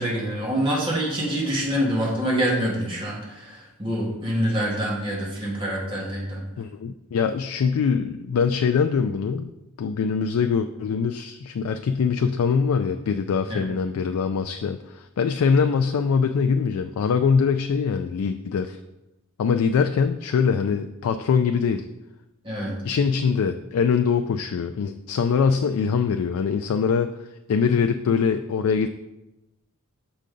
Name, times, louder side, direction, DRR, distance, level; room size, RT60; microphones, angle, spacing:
voice 1, 0.0-6.4 13.5-13.6 22.4-22.7, equal, 25° right, -5 dB, 1.6 m, -26 dB
voice 2, 6.6-9.5 9.8-18.8 19.4-21.9 22.8-27.1 27.5-28.9, left 6 dB, 75° left, 8 dB, 0.3 m, -23 dB
6.6 x 5.0 x 3.8 m, 0.97 s
head